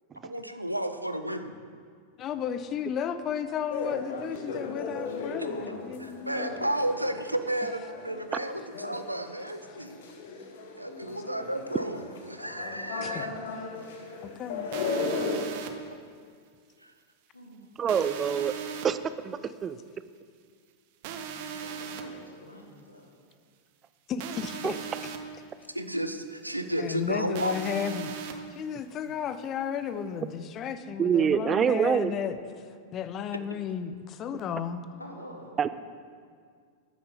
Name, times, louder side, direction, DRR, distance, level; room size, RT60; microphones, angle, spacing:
voice 1, 0.2-1.5 5.4-5.5 6.0-10.0 10.8-13.3 16.8-16.9 25.7-27.6, right 1 dB, 85° right, 8 dB, 0.6 m, -32 dB
voice 2, 2.2-6.7 13.0-13.4 14.2-14.7 24.1-24.9 26.8-32.7 32.9-34.8 35.6-35.7, left 8 dB, 30° left, 11 dB, 0.6 m, -34 dB
sound 1, 3.7-15.7, left 3 dB, 55° left, 1.2 m, -36 dB
sound 2, 14.7-15.7 17.9-18.9 21.0-22.0 24.2-25.2 27.3-28.3, right 7 dB, 50° right, 0.8 m, -38 dB
voice 3, 17.8-18.5 18.8-19.0 19.2-19.8 24.6-24.7 31.0-32.1 35.6-35.7, right 7 dB, 25° right, 13 dB, 0.4 m, -25 dB
voice 4, 21.5-23.1 35.0-35.5, equal, 85° left, 1 dB, 1.5 m, -47 dB
12.5 x 9.4 x 4.0 m, 2.1 s
figure-of-eight pair, 90°, 0 cm